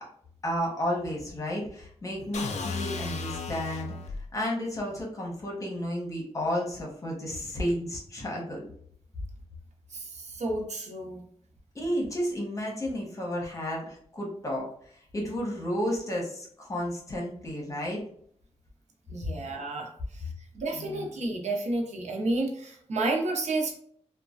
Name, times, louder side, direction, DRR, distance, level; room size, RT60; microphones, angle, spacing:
voice 1, 0.4-3.9 4.3-8.7 11.7-14.6 15.1-18.0 20.7-21.1, equal, 30° left, -2 dB, 0.9 m, -32 dB
sound 1, 2.3-4.3, left 4 dB, 85° left, 0.4 m, -34 dB
voice 2, 9.9-11.2 19.1-23.8, right 2 dB, 85° right, 1 dB, 0.6 m, -31 dB
3.1 x 2.2 x 2.5 m, 0.63 s
wide cardioid pair, 130°, 11 cm